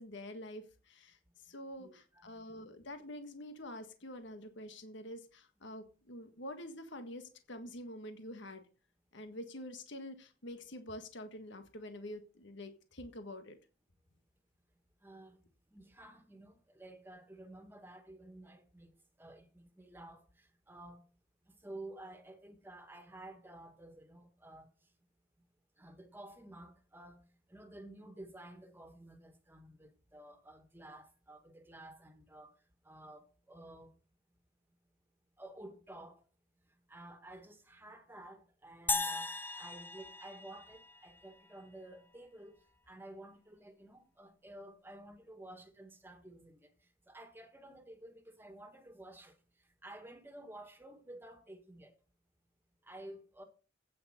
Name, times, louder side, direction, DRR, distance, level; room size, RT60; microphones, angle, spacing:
voice 1, 0.0-1.2 1.4-8.6 9.1-13.6, left 1 dB, 65° left, 1.7 m, -47 dB
voice 2, 1.8-2.4 15.0-15.4 15.7-21.0 21.4-24.9 25.8-33.9 35.4-36.3 36.6-42.6 42.9-51.9 52.8-53.4, right 1 dB, 10° right, 2.0 m, -52 dB
sound 1, 38.9-41.3, left 3 dB, 10° left, 0.5 m, -37 dB
9.0 x 8.0 x 6.6 m
head